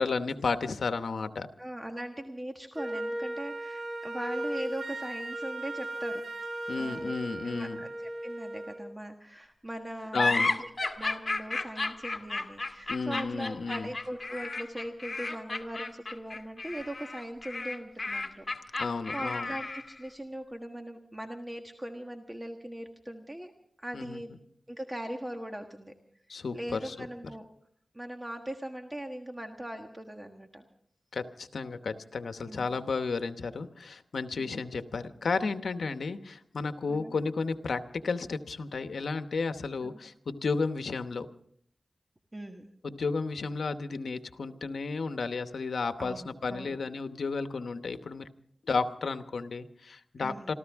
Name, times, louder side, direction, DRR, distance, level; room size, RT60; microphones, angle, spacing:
voice 1, 0.0-1.5 6.7-7.8 10.1-10.5 12.9-13.9 18.8-19.5 23.9-24.2 26.3-27.1 31.1-41.3 42.8-48.3 48.7-50.5, left 4 dB, 85° left, 9 dB, 0.9 m, -33 dB
voice 2, 1.6-6.2 6.8-7.1 7.4-7.9 8.2-23.5 23.8-24.3 24.7-25.9 26.3-27.5 27.9-30.6 32.4-32.8 34.3-34.6 36.9-37.1 39.8-40.0 42.3-42.7 46.0-46.8 50.2-50.5, right 1 dB, 20° right, 4 dB, 1.4 m, -40 dB
Wind instrument woodwind instrument, 2.7-8.8, right 1 dB, 75° right, 3.8 m, -37 dB
sound 1, 10.1-20.0, left 3 dB, 40° left, 1.8 m, -33 dB
27.0 x 14.0 x 3.6 m, 0.65 s
cardioid pair, 55°, 0 cm